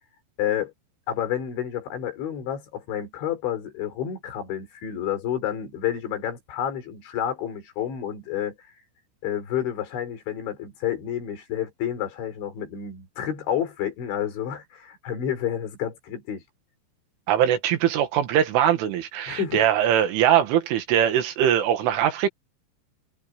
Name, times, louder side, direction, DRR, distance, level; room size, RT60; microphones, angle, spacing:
voice 1, 0.4-0.7 1.1-8.6 9.2-16.4 19.3-19.6, left 10 dB, 70° left, 6.4 m, -29 dB
voice 2, 17.3-22.3, right 10 dB, 80° right, 4.4 m, -21 dB
omnidirectional pair, 5.6 m